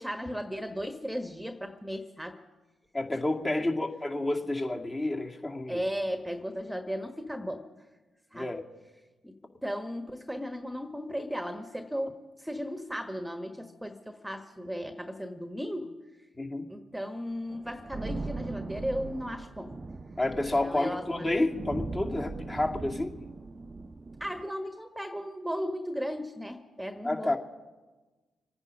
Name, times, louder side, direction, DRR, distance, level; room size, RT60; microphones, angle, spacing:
voice 1, 0.0-2.4 3.4-3.7 5.7-7.6 8.3-8.5 9.2-9.3 9.6-16.0 16.7-19.8 20.6-21.3 24.2-27.4, equal, 5° right, 7 dB, 1.3 m, -36 dB
voice 2, 2.9-5.8 8.3-8.6 16.4-16.7 20.2-23.1 27.0-27.4, left 2 dB, 30° left, 1 dB, 2.3 m, -30 dB
sound 1, 17.5-24.4, right 3 dB, 35° right, 0.7 m, -39 dB
26.5 x 9.8 x 5.3 m, 1.2 s
hypercardioid pair, 40°, 0 cm